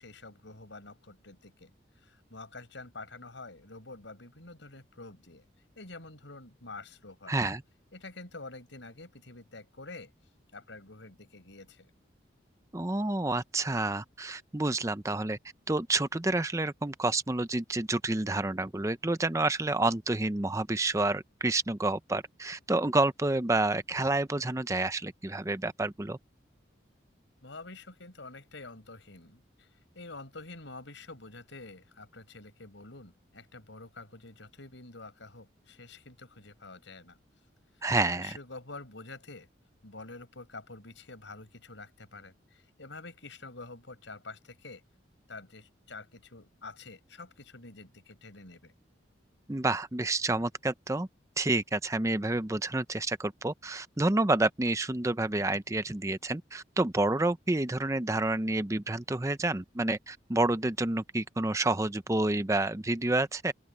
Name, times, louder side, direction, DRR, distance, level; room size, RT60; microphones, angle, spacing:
voice 1, 0.0-1.7 1.9-5.4 5.8-7.3 7.9-10.1 10.5-11.9 27.4-29.7 29.9-37.2 37.8-39.5 39.8-44.8 45.3-48.7, left 3 dB, 80° left, 5.1 m, -47 dB
voice 2, 7.3-7.6 12.7-15.4 15.7-26.2 37.8-38.4 49.5-51.1 51.4-63.5, right 2 dB, 15° right, 0.6 m, -29 dB
open air
head